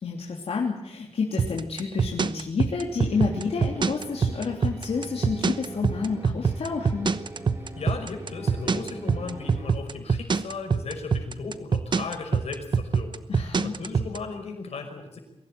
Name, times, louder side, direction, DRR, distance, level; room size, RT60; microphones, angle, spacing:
voice 1, 0.0-7.1 13.3-13.7, left 5 dB, 70° left, -1 dB, 3.2 m, -29 dB
sound 1, 1.4-14.2, right 5 dB, 45° right, 1.0 m, -24 dB
sound 2, 2.9-9.7, right 1 dB, 25° right, 4.0 m, -42 dB
voice 2, 7.7-15.2, left 4 dB, 90° left, 4 dB, 5.6 m, -36 dB
23.0 x 16.5 x 9.2 m, 0.90 s
wide cardioid pair, 150°, 11 cm